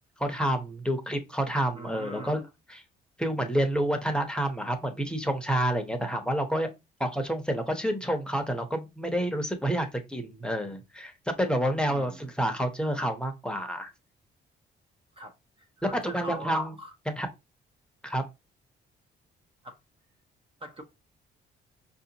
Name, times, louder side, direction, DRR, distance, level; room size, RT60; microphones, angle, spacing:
voice 1, 0.2-2.8 3.2-6.7 7.0-13.9 15.9-16.7 17.1-17.3 18.0-18.2, right 1 dB, 5° left, 0.8 m, -29 dB
voice 2, 1.7-2.3 11.9-12.2 15.2-16.9 19.6-19.8 20.6-20.8, right 1 dB, 25° right, 0.7 m, -42 dB
4.9 x 2.6 x 2.9 m
cardioid pair, 90°, 20 cm